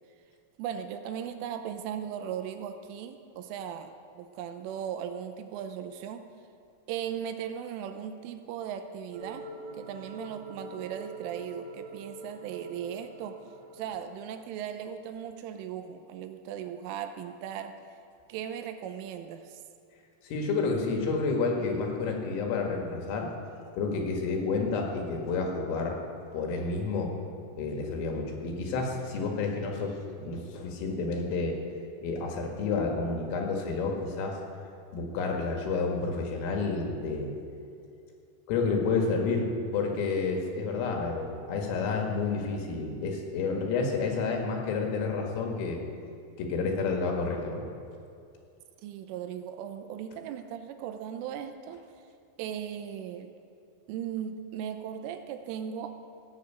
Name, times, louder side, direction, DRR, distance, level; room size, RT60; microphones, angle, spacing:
voice 1, 0.6-6.3 6.9-13.4 13.7-17.8 18.3-19.6 48.8-51.8 52.4-53.3 53.9-56.0, right 9 dB, 85° right, 8 dB, 3.2 m, -37 dB
sound 1, 9.1-14.2, right 2 dB, 50° right, 3.4 m, -44 dB
voice 2, 20.2-23.3 23.8-26.0 26.3-27.1 27.6-31.6 32.0-34.4 34.9-37.3 38.5-45.8 46.4-47.6, left 4 dB, 80° left, 1 dB, 4.4 m, -30 dB
16.5 x 8.2 x 8.1 m, 2.5 s
omnidirectional pair, 5.8 m